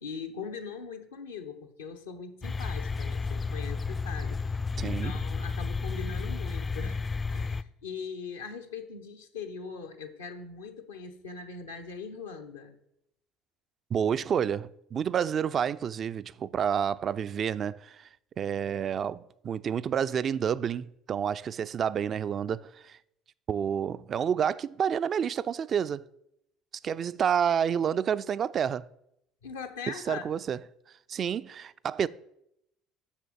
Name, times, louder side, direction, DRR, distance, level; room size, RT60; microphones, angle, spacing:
voice 1, 0.0-4.4 4.8-7.0 7.3-12.8 29.4-30.3, left 5 dB, 80° left, 0.8 m, -41 dB
sound 1, 2.4-7.6, left 4 dB, 30° left, 0.4 m, -32 dB
voice 2, 4.8-5.2 13.9-18.1 18.4-23.0 23.5-26.0 26.8-28.8 30.1-30.6 31.1-32.1, right 8 dB, 45° right, 0.4 m, -29 dB
7.2 x 6.6 x 6.8 m
figure-of-eight pair, 60°, 0 cm